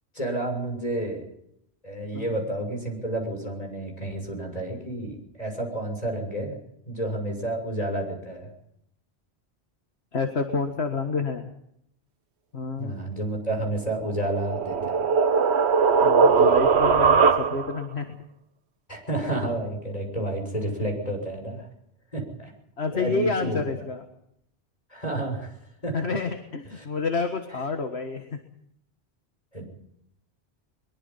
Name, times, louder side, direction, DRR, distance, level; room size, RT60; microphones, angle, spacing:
voice 1, 0.1-1.2 1.8-6.5 6.9-8.5 12.8-15.0 18.9-21.7 22.1-22.5 22.9-23.6 24.9-25.6 25.8-26.2 26.7-26.8 29.5-29.7, right 1 dB, 35° left, 3 dB, 6.8 m, -30 dB
voice 2, 2.0-2.4 10.1-11.5 12.5-12.9 16.0-18.2 22.8-24.1 25.9-28.4, left 4 dB, 80° left, 5 dB, 1.9 m, -29 dB
sound 1, 14.1-17.8, right 5 dB, 90° right, 1.4 m, -20 dB
23.0 x 22.5 x 5.7 m, 0.77 s
omnidirectional pair, 1.1 m